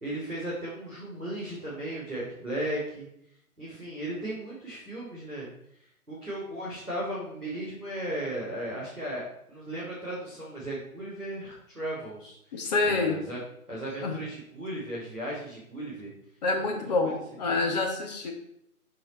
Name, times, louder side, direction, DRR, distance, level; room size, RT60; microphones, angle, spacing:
voice 1, 0.0-3.1 3.6-5.5 5.8-13.4 13.7-16.1 16.6-17.2, right 1 dB, ahead, -29 dB, 0.6 m, -36 dB
voice 2, 12.5-13.2 14.0-14.1 16.4-18.3, left 3 dB, 25° left, 1 dB, 1.5 m, -27 dB
12.5 x 4.6 x 4.4 m, 0.75 s
figure-of-eight pair, 150°, 45 cm